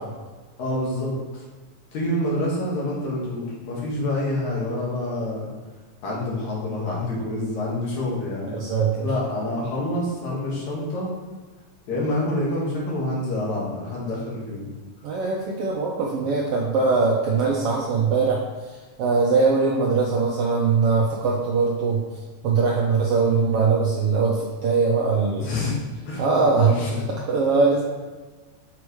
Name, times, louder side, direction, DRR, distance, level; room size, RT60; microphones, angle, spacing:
voice 1, 0.6-1.4 1.9-5.5 6.0-8.6 9.0-11.1 11.9-14.6 25.4-25.8 26.1-26.2 26.6-27.1, left 1 dB, 75° left, -5 dB, 2.9 m, -27 dB
voice 2, 8.5-9.1 15.0-18.4 18.7-22.0 22.4-25.5 26.2-26.7 27.3-27.8, right 4 dB, 75° right, -3 dB, 1.4 m, -21 dB
7.0 x 4.9 x 3.1 m, 1.3 s
omnidirectional pair, 3.4 m